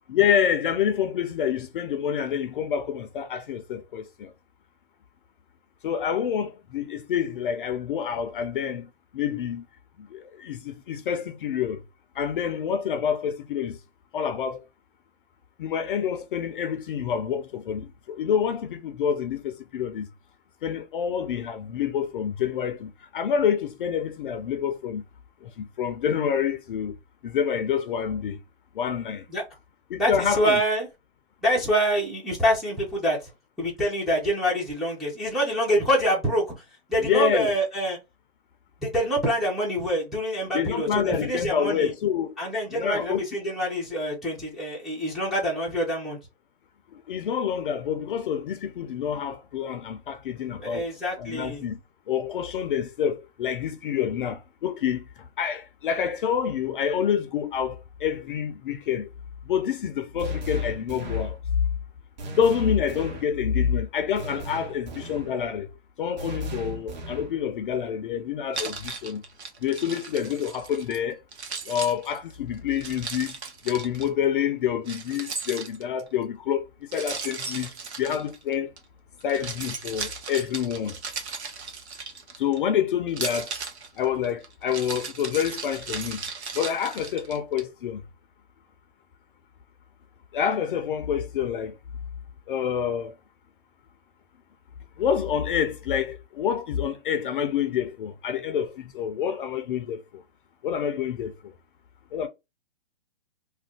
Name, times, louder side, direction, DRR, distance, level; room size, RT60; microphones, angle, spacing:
voice 1, 0.1-4.3 5.8-9.7 10.0-11.8 12.1-13.8 14.1-14.6 15.6-20.1 20.6-25.0 25.4-27.0 27.2-28.4 28.7-29.3 29.9-30.6 37.0-37.5 40.5-42.3 42.7-43.3 46.9-50.9 51.2-51.8 52.1-59.1 59.4-61.6 62.3-65.7 66.0-69.2 69.6-71.2 71.7-73.4 73.6-78.7 79.2-81.0 82.4-83.5 84.0-86.2 86.5-88.0 90.3-91.8 92.5-93.1 95.0-100.2 100.6-101.5 102.1-102.3, left 8 dB, 50° left, 0.5 m, -27 dB
voice 2, 30.0-30.9 31.4-33.2 33.6-36.5 36.9-38.0 38.8-41.9 42.4-46.2 50.6-51.6, equal, ahead, 0.4 m, -26 dB
sound 1, 60.2-61.4 62.2-63.3 64.2-65.4 66.2-67.4, right 3 dB, 40° right, 1.0 m, -38 dB
Keys jangling, 68.5-71.0 71.3-74.1 74.9-76.1 76.9-78.8 79.2-82.6 83.1-87.6, right 5 dB, 85° right, 0.9 m, -36 dB
2.5 x 2.1 x 3.6 m
hypercardioid pair, 140°, 33 cm